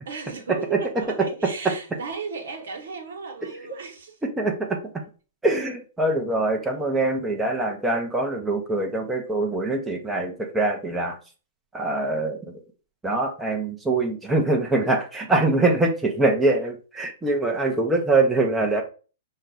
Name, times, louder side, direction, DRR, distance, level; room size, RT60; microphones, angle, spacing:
voice 1, 0.0-4.2, right 4 dB, 65° right, 1.2 m, -35 dB
voice 2, 4.4-4.8 5.4-11.2 11.7-12.4 13.0-18.8, right 2 dB, 10° right, 0.7 m, -23 dB
5.3 x 2.3 x 3.8 m
figure-of-eight pair, 115°, 0 cm